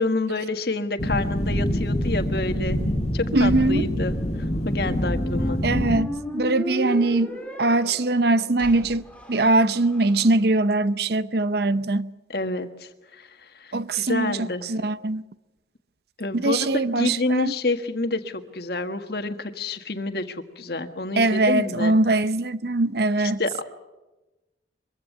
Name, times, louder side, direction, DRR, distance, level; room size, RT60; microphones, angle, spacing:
voice 1, 0.0-2.8 3.1-4.2 4.6-5.6 12.3-14.7 16.2-16.7 17.0-21.9 23.2-23.6, left 2 dB, 55° left, 1.6 m, -28 dB
sound 1, 1.0-6.0, equal, 35° left, 2.0 m, -25 dB
voice 2, 3.3-3.8 5.6-12.1 13.7-15.2 16.3-17.6 21.2-23.4, right 2 dB, 55° right, 0.7 m, -22 dB
Squeak, 4.3-10.3, left 1 dB, 5° left, 2.2 m, -35 dB
23.5 x 15.5 x 9.4 m
head